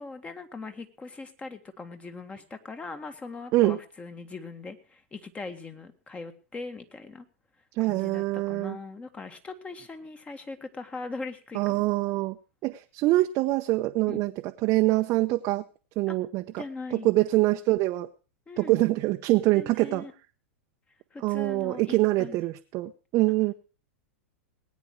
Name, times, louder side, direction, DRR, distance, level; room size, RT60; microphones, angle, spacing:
voice 1, 0.0-7.3 7.8-11.9 14.1-14.2 16.1-16.2 16.6-17.1 18.5-18.8 19.5-20.1 21.1-22.4, left 3 dB, 15° left, 8 dB, 1.8 m, -40 dB
voice 2, 7.7-8.8 11.5-12.4 12.6-14.3 14.6-15.6 16.0-16.6 16.9-18.1 18.6-20.0 21.2-23.5, right 19 dB, 40° right, 5 dB, 0.9 m, -24 dB
20.0 x 9.5 x 4.7 m, 0.36 s
hypercardioid pair, 100°, 7 cm